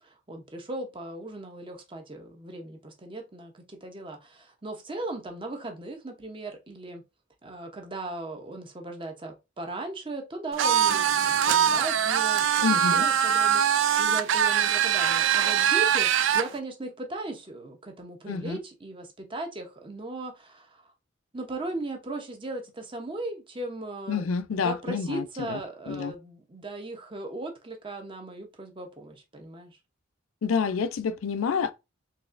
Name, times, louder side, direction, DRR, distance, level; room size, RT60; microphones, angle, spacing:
voice 1, 0.0-7.0 7.4-20.9 21.3-24.3 24.6-29.8, right 2 dB, 25° right, 0.7 m, -37 dB
sound 1, 10.6-16.5, right 9 dB, 65° right, 0.4 m, -22 dB
voice 2, 12.6-13.1 18.3-18.6 24.1-25.6 25.9-26.1 30.4-31.7, left 5 dB, 80° left, 0.4 m, -28 dB
4.1 x 3.1 x 2.5 m
head